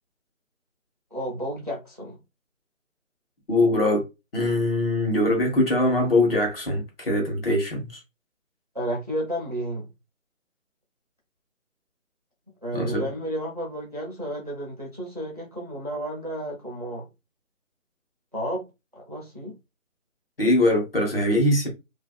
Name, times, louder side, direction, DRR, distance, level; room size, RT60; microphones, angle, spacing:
voice 1, 1.1-2.2 8.7-9.9 12.6-17.1 18.3-18.6 18.9-19.6, right 1 dB, 30° right, 0.5 m, -32 dB
voice 2, 3.5-4.0 4.3-7.9 12.7-13.1 20.4-21.7, left 1 dB, 45° left, 1.1 m, -22 dB
2.5 x 2.3 x 2.3 m
figure-of-eight pair, 160°, 40 cm